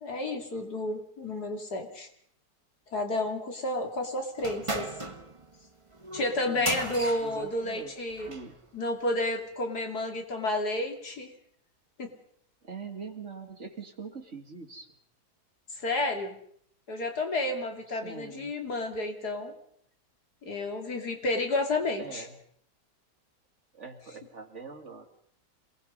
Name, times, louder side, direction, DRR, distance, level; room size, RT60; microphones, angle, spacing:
voice 1, 0.0-2.1 2.9-4.9 6.1-8.3 8.7-11.3 12.0-12.1 15.7-16.3 16.9-19.5 20.4-22.3, left 2 dB, 70° left, 4 dB, 3.2 m, -31 dB
sound 1, 4.4-8.5, right 2 dB, 20° right, 1.6 m, -37 dB
voice 2, 6.4-6.7 7.2-8.6 12.6-14.9 17.9-18.5 22.0-22.3 23.7-25.1, right 5 dB, 45° right, 5 dB, 2.4 m, -43 dB
27.5 x 19.5 x 5.4 m, 0.65 s
omnidirectional pair, 1.8 m